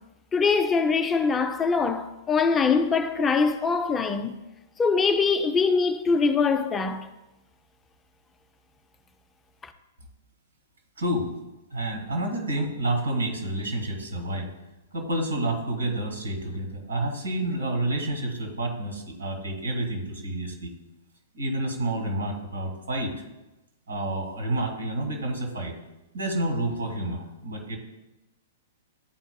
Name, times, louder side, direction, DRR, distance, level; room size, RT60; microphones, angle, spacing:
voice 1, 0.3-4.4 4.8-7.1, left 5 dB, 15° left, 0.4 m, -23 dB
voice 2, 11.0-11.3 11.7-14.5 14.9-20.7 21.3-23.1 23.9-25.7 26.1-27.8, right 1 dB, 70° right, 2.0 m, -29 dB
11.5 x 4.6 x 2.2 m
figure-of-eight pair, 105°, 0 cm